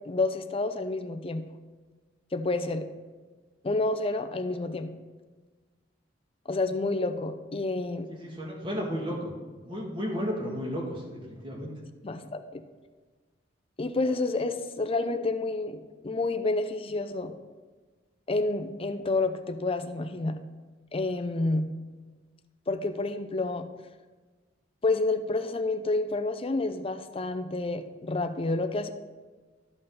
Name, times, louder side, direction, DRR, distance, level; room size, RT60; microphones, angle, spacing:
voice 1, 0.0-1.5 2.3-2.8 3.6-4.9 6.5-8.1 12.0-12.6 13.8-17.3 18.3-20.4 20.9-21.7 22.7-23.7 24.8-28.9, left 2 dB, 30° left, 7 dB, 0.5 m, -29 dB
voice 2, 8.1-9.3 9.7-11.7, equal, 25° right, -2 dB, 1.9 m, -33 dB
12.5 x 5.5 x 4.0 m, 1.4 s
head